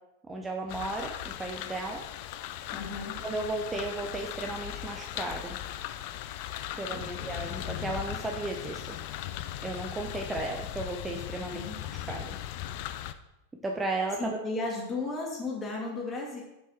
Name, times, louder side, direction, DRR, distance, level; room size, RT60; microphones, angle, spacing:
voice 1, 0.3-2.0 3.2-5.6 6.8-9.0 9.6-11.6 12.1-12.4 13.6-14.3, right 2 dB, 15° right, 1 dB, 0.6 m, -34 dB
sound 1, 0.7-13.1, left 12 dB, 45° left, 0.4 m, -38 dB
voice 2, 2.7-3.2 6.9-7.3 11.4-11.8 14.2-16.4, left 3 dB, 20° left, -2 dB, 2.0 m, -35 dB
6.1 x 5.5 x 4.2 m, 0.91 s
figure-of-eight pair, 90°, 0 cm